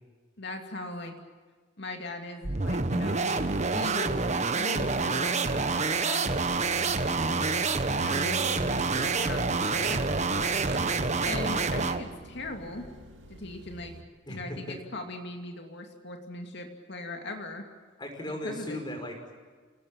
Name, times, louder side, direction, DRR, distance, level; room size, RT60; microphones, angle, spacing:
voice 1, 0.4-1.1 1.8-4.1 4.5-6.4 6.8-7.5 8.0-10.5 11.2-12.9 13.3-13.9 14.3-17.6 18.2-18.8, left 2 dB, 60° left, 3 dB, 2.7 m, -39 dB
sound 1, 2.4-12.1, right 4 dB, 35° right, 1.2 m, -27 dB
sound 2, 6.3-14.0, equal, 70° right, 2.6 m, -45 dB
sound 3, 8.7-10.1 10.4-10.9, right 4 dB, 55° right, 0.7 m, -40 dB
voice 2, 10.7-11.1 14.3-14.8 18.0-19.3, left 1 dB, 20° left, 4 dB, 5.4 m, -38 dB
28.0 x 18.5 x 9.0 m, 1.5 s
head